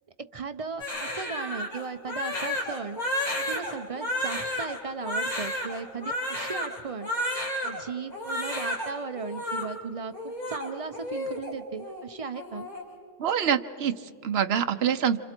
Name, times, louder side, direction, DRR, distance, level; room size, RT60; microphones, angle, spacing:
voice 1, 0.3-3.0 3.5-7.1 7.6-12.7, right 5 dB, 40° right, 9 dB, 0.6 m, -36 dB
Crying sobbing, 0.8-7.8 8.1-8.9 9.1-9.6 10.1-11.5 11.8-12.0 12.3-12.8, left 1 dB, 35° left, 3.8 m, -32 dB
voice 2, 13.2-15.2, right 8 dB, 65° right, 8 dB, 1.0 m, -26 dB
27.5 x 27.0 x 4.4 m, 2.2 s
omnidirectional pair, 1.2 m